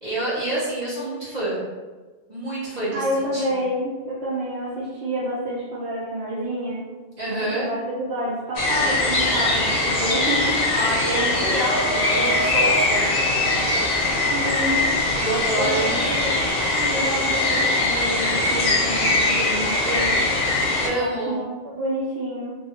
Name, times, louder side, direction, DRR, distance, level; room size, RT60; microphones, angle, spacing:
voice 1, 0.0-1.6 2.3-3.0 3.3-3.4 7.2-7.7 10.7-13.0 15.2-16.0 20.8-21.4, right 1 dB, 45° right, -9 dB, 1.0 m, -27 dB
voice 2, 2.9-6.8 7.5-10.6 14.3-14.9 15.5-16.4 16.8-20.2 20.9-22.6, right 1 dB, 85° right, -7 dB, 0.9 m, -28 dB
sound 1, 8.5-20.9, left 2 dB, 50° left, 0.6 m, -21 dB
2.5 x 2.2 x 2.8 m, 1.3 s
omnidirectional pair, 1.0 m